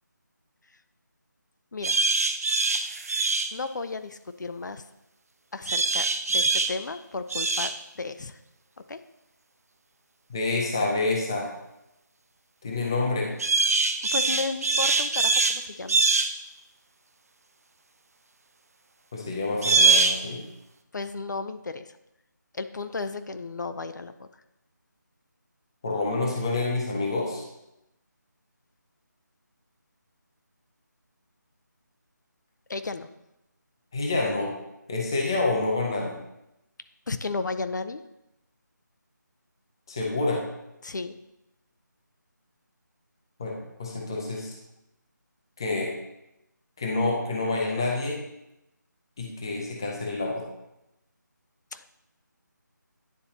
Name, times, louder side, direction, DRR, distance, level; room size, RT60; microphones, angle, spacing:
sound 1, 1.8-3.5 5.7-6.7 7.3-7.7 13.4-15.6 15.9-16.3 19.6-20.2, right 3 dB, 50° right, 0.5 m, -23 dB
voice 1, 3.5-4.8 5.5-8.4 8.9-9.0 14.1-16.0 20.9-21.9 22.5-24.3 32.7-33.1 37.1-38.0 40.8-41.2 51.7-51.9, left 3 dB, 70° left, 10 dB, 0.4 m, -34 dB
voice 2, 10.3-11.5 12.6-13.3 19.1-20.4 25.8-27.5 33.9-34.5 34.9-36.2 39.9-40.4 43.4-44.5 45.6-45.9 46.8-48.2 49.2-50.4, left 3 dB, 15° left, -1 dB, 0.5 m, -28 dB
10.0 x 4.2 x 2.8 m, 0.89 s
figure-of-eight pair, 170°, 10 cm